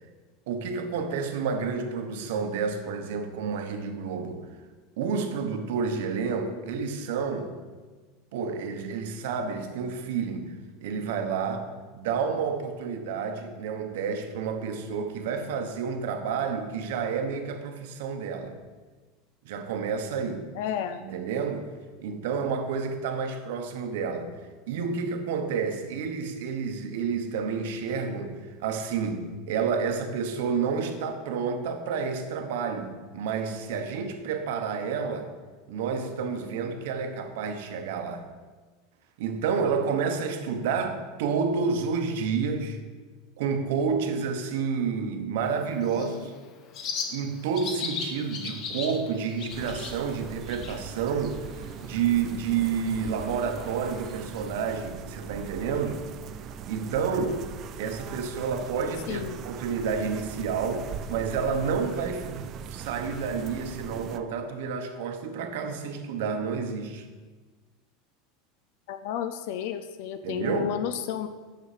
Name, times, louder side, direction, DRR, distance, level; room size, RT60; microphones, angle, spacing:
voice 1, 0.5-4.5 5.0-7.5 8.3-10.5 10.8-11.7 11.9-18.6 19.4-20.5 21.0-21.7 22.0-24.3 24.7-35.3 35.7-38.3 39.2-42.8 43.4-46.3 47.1-56.1 56.7-57.4 57.8-67.1 70.2-70.7, right 5 dB, 65° right, 7 dB, 1.0 m, -30 dB
voice 2, 20.5-21.0 46.0-46.1 59.1-59.4 68.9-71.3, left 9 dB, 55° left, 10 dB, 0.4 m, -32 dB
Bird, 45.4-54.4, left 5 dB, 30° left, 0.8 m, -40 dB
sound 1, 49.5-64.2, right 8 dB, 30° right, 0.3 m, -40 dB
8.2 x 6.4 x 5.0 m, 1.4 s
supercardioid pair, 180°, 0 cm